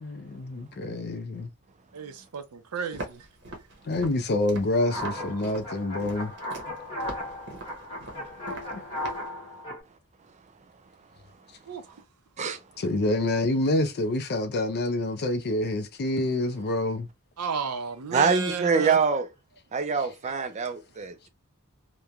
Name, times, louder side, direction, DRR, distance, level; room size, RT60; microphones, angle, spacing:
voice 1, 0.0-1.5 3.8-6.3 8.7-8.8 12.8-17.1, left 2 dB, 45° left, 0.4 m, -27 dB
voice 2, 1.9-3.3 11.7-11.9 17.4-19.0 20.2-20.3, right 6 dB, 85° right, 0.6 m, -33 dB
Walk footsteps, 2.9-9.3, right 2 dB, 55° right, 0.8 m, -42 dB
sound 1, 4.8-9.8, left 1 dB, 25° left, 1.3 m, -36 dB
voice 3, 18.1-19.3 19.7-21.3, right 5 dB, 30° right, 0.4 m, -25 dB
3.0 x 2.1 x 2.3 m
head